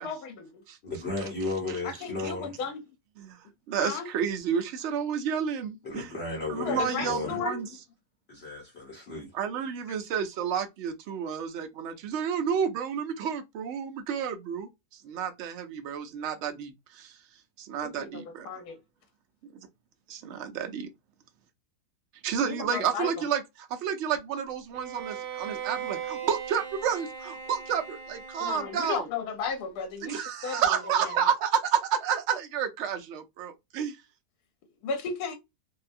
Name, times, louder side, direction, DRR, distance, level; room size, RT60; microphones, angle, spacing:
voice 1, 0.0-0.5 1.8-2.8 3.8-4.1 6.6-7.6 17.8-18.8 22.6-23.1 28.4-30.8 34.8-35.4, left 6 dB, 85° left, 1.1 m, -34 dB
voice 2, 0.8-2.7 5.8-7.5 8.3-9.3 9.9-10.0, left 3 dB, 50° left, 0.9 m, -35 dB
voice 3, 3.7-6.1 6.5-7.7 9.3-14.7 15.0-17.2 17.6-18.5 20.1-20.9 22.2-29.1 30.0-34.0, right 7 dB, 65° right, 0.7 m, -30 dB
Bowed string instrument, 24.7-29.2, right 7 dB, 90° right, 1.2 m, -39 dB
2.7 x 2.2 x 2.5 m
omnidirectional pair, 1.6 m